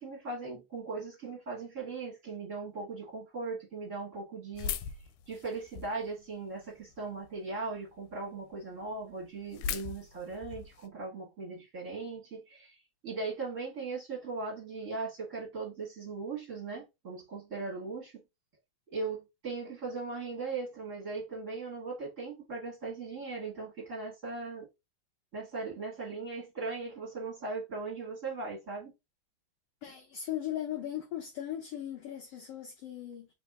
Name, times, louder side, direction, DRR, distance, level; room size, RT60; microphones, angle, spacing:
voice 1, 0.0-4.8 5.3-12.8 13.0-18.2 18.9-24.7 25.3-28.9, right 3 dB, 30° right, 2.0 m, -39 dB
sound 1, 4.5-6.1 6.6-7.3 7.8-7.9 8.1-8.2 8.5-8.6 8.8-10.9, left 7 dB, 90° left, 2.0 m, -38 dB
voice 2, 29.8-33.3, left 11 dB, 70° left, 1.6 m, -38 dB
4.2 x 3.4 x 3.6 m
omnidirectional pair, 3.4 m